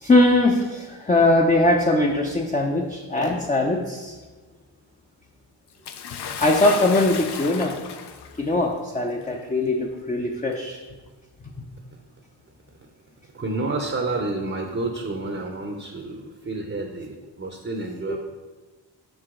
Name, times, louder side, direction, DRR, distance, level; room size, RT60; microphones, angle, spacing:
voice 1, 0.0-4.2 6.4-7.8 8.4-10.8 11.6-11.7 18.1-18.2, left 2 dB, 15° left, 1 dB, 0.5 m, -21 dB
Bathtub (filling or washing) / Splash splatter, 5.8-8.4 9.4-9.5 10.5-10.6, left 7 dB, 60° left, 0.6 m, -33 dB
voice 2, 13.3-18.2, right 2 dB, 25° right, 3 dB, 0.7 m, -30 dB
5.5 x 4.8 x 3.7 m, 1.3 s
cardioid pair, 60°, 46 cm